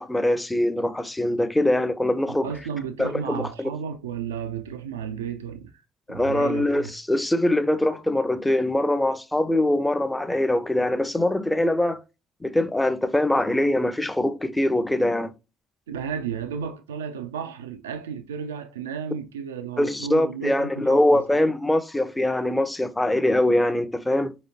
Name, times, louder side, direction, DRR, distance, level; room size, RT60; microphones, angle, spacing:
voice 1, 0.0-2.5 3.0-3.7 6.1-12.0 12.4-15.3 19.8-24.3, left 1 dB, 10° left, 0.6 m, -23 dB
voice 2, 2.4-5.7 6.1-6.9 15.9-21.2, right 7 dB, 75° right, 0.3 m, -33 dB
4.7 x 3.0 x 2.7 m
figure-of-eight pair, 50°, 0 cm